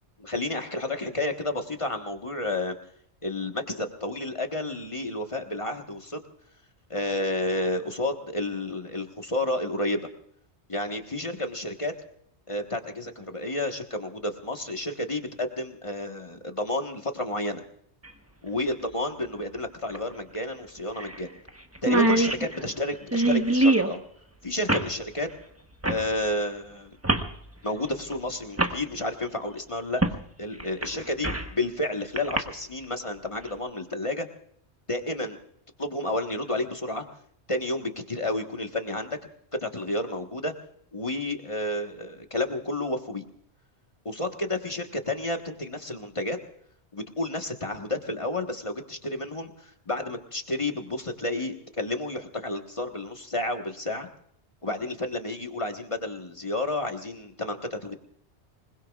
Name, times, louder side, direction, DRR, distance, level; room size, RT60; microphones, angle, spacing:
voice 1, 0.2-2.7 3.2-6.2 6.9-10.1 10.7-11.9 12.5-17.6 18.4-21.3 21.8-24.0 24.4-25.3 25.8-27.0 27.6-30.0 30.4-34.3 34.9-35.4 35.8-37.1 37.5-39.2 39.6-40.5 40.9-43.3 44.0-46.4 46.9-54.1 54.6-57.9, left 1 dB, 30° left, 4 dB, 1.4 m, -31 dB
sound 1, 18.0-18.1 19.9-20.0 20.3-20.4 21.0-21.2 21.5-21.6 21.7-23.9 24.7-24.9 25.8-26.0 27.0-27.3 28.1-28.2 28.6-28.8 30.0-30.2 30.6-31.5 32.2-32.4, right 2 dB, 15° right, 1.1 m, -24 dB
26.5 x 20.5 x 2.4 m, 0.66 s
omnidirectional pair, 1.2 m